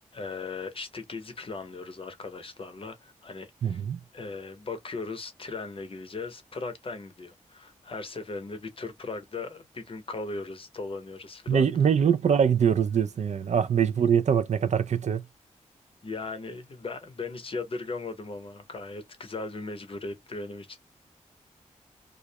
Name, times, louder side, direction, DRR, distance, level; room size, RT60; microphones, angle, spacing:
voice 1, 0.1-3.8 4.1-11.7 16.0-20.8, left 3 dB, 45° left, 0.7 m, -38 dB
voice 2, 3.6-4.0 11.5-15.2, right 7 dB, 65° right, 0.4 m, -23 dB
2.4 x 2.0 x 2.7 m
wide cardioid pair, 80°, 13 cm